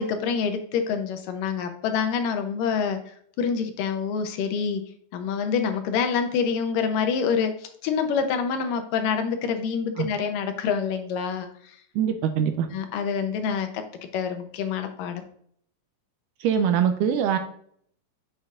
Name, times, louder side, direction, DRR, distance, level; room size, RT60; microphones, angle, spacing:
voice 1, 0.0-3.0 3.4-4.8 5.1-11.8 12.7-13.8 14.1-15.2, left 6 dB, 75° left, 7 dB, 2.3 m, -26 dB
voice 2, 12.0-12.7 16.4-17.4, right 8 dB, 80° right, 8 dB, 2.0 m, -23 dB
8.2 x 6.7 x 2.5 m, 0.63 s
omnidirectional pair, 4.0 m